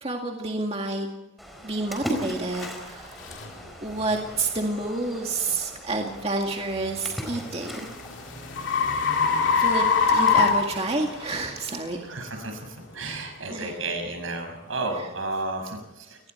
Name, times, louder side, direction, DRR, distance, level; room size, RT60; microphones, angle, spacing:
voice 1, 0.0-1.1 1.6-3.2 3.8-7.9 9.6-12.1 13.0-13.8 15.0-15.1, right 2 dB, 30° right, 1 dB, 2.1 m, -29 dB
Splash splatter, 1.4-11.4, equal, ahead, 4.3 m, -39 dB
sound 1, 2.6-2.7 3.3-3.5 4.1-4.3 6.9-11.4, left 5 dB, 65° left, 3.0 m, -23 dB
voice 2, 12.0-16.2, right 2 dB, 75° right, 4 dB, 6.2 m, -32 dB
29.0 x 20.0 x 4.6 m, 1.0 s
head